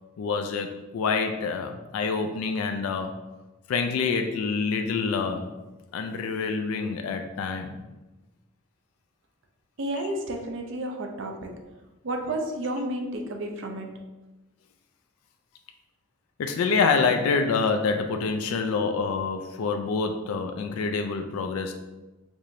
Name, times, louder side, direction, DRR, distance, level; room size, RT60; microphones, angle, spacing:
voice 1, 0.2-3.1 3.7-5.5 5.9-7.8 16.4-21.7, left 4 dB, 90° left, 6 dB, 0.3 m, -26 dB
voice 2, 9.8-11.5 12.0-13.9, right 1 dB, 60° right, 3 dB, 0.5 m, -31 dB
4.7 x 2.5 x 2.7 m, 1.1 s
head